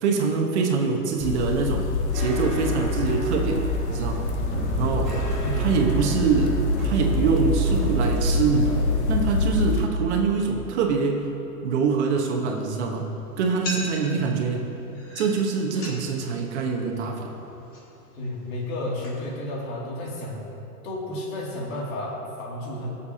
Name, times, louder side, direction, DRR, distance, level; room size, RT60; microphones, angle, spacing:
voice 1, 0.0-4.3 4.8-5.2 5.6-8.8 9.1-11.3 11.6-14.7 15.1-17.4, right 5 dB, 45° right, 2 dB, 1.1 m, -24 dB
sound 1, 1.2-9.9, left 2 dB, 45° left, 0.6 m, -25 dB
sound 2, 2.1-9.6, equal, 5° right, 0.3 m, -33 dB
voice 2, 5.4-5.8 14.0-14.3 18.1-20.4 20.8-22.9, left 1 dB, 60° left, -3 dB, 2.5 m, -32 dB
sound 3, 12.1-19.4, left 1 dB, 30° left, 2.5 m, -41 dB
19.0 x 6.9 x 2.8 m, 2.9 s
hypercardioid pair, 160°, 46 cm